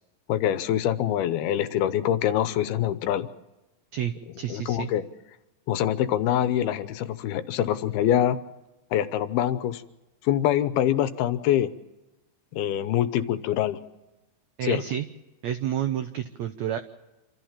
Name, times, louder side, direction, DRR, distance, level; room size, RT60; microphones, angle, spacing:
voice 1, 0.3-3.3 4.5-5.0 5.7-8.4 8.9-9.8 10.2-11.7 12.5-13.8 14.6-14.8, left 11 dB, 85° left, 12 dB, 2.8 m, -24 dB
voice 2, 3.9-4.9 14.6-15.1 15.4-16.8, right 10 dB, 85° right, 9 dB, 1.5 m, -29 dB
27.5 x 14.0 x 7.3 m, 1.1 s
omnidirectional pair, 4.4 m